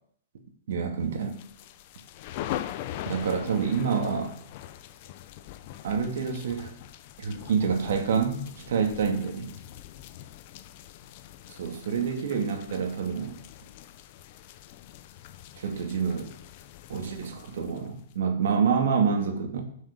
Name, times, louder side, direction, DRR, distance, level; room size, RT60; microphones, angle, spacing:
voice 1, 0.7-1.4 3.1-4.3 5.8-6.7 7.2-9.5 11.5-13.4 15.6-16.3 16.9-19.6, right 6 dB, 70° right, 4 dB, 2.4 m, -27 dB
sound 1, 1.2-18.1, left 12 dB, 45° left, 0.7 m, -42 dB
10.5 x 6.4 x 6.9 m, 0.64 s
hypercardioid pair, 150°, 0 cm